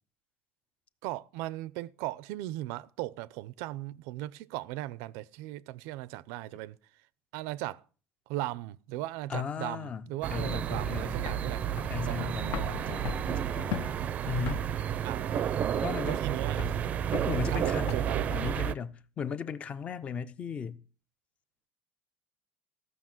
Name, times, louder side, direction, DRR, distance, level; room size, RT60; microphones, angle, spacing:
voice 1, 1.0-6.8 7.3-7.8 8.3-11.6 12.1-13.0 15.0-15.6 16.0-16.8 17.5-18.3, right 16 dB, 90° right, 0.6 m, -38 dB
voice 2, 9.3-11.1 11.9-13.8 14.3-14.6 15.8-16.2 17.3-18.0 18.3-20.8, left 7 dB, 25° left, 0.6 m, -36 dB
sound 1, 10.2-18.7, right 9 dB, 30° right, 0.5 m, -31 dB
sound 2, 10.7-18.2, left 8 dB, 60° left, 0.9 m, -40 dB
15.0 x 6.3 x 7.7 m
cardioid pair, 170°, 5 cm